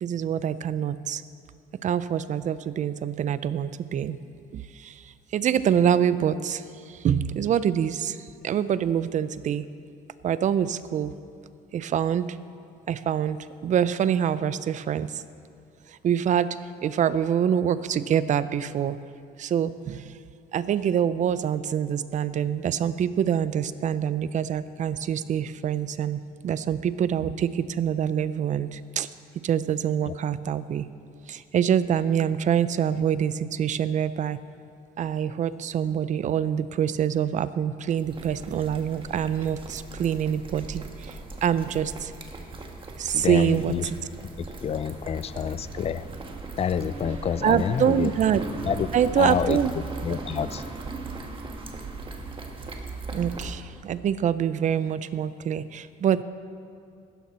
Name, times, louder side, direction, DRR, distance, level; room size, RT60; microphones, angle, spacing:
voice 1, 0.0-1.2 1.8-4.2 4.5-5.0 5.3-9.6 10.2-11.1 11.7-12.4 12.9-15.2 15.9-19.0 19.4-20.1 20.5-29.1 29.4-30.9 31.3-34.4 35.0-42.1 43.0-43.7 47.4-48.4 48.9-49.7 50.1-50.2 53.1-56.2, right 9 dB, 45° right, 15 dB, 0.6 m, -25 dB
sound 1, 38.0-53.6, right 3 dB, 30° right, 1.6 m, -38 dB
voice 2, 43.1-43.8 44.2-46.1 46.6-48.1 48.6-48.9 49.2-49.6 50.0-50.7, left 8 dB, 35° left, 15 dB, 0.5 m, -28 dB
15.5 x 13.0 x 4.3 m, 2.4 s
cardioid pair, 110°, 17 cm